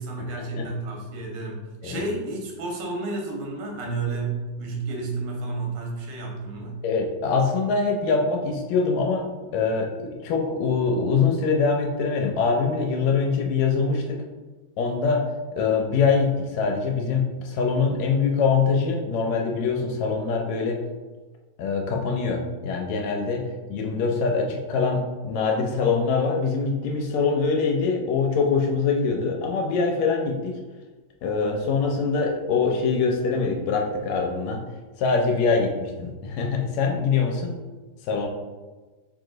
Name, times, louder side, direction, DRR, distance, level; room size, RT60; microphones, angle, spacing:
voice 1, 0.0-6.8, right 3 dB, 90° right, 0 dB, 2.4 m, -31 dB
voice 2, 6.8-9.3 9.5-14.2 14.8-20.8 21.6-30.5 31.2-34.6 35.0-37.6 38.0-38.3, left 4 dB, 80° left, 2 dB, 1.8 m, -24 dB
4.8 x 2.9 x 3.7 m, 1.3 s
omnidirectional pair, 3.3 m